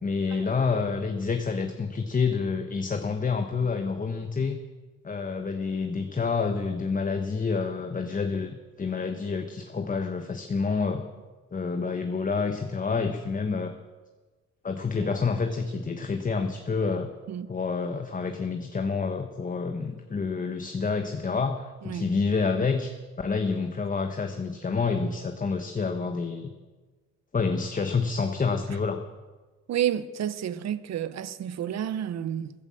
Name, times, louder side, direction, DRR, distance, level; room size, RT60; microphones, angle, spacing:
voice 1, 0.0-4.6 5.0-11.0 11.5-13.7 14.6-17.1 17.5-22.9 23.2-26.5 27.3-29.0, left 4 dB, 25° left, 1.1 m, -28 dB
voice 2, 29.7-32.5, right 10 dB, 60° right, 0.9 m, -30 dB
14.5 x 11.0 x 7.5 m
cardioid pair, 90°, 30 cm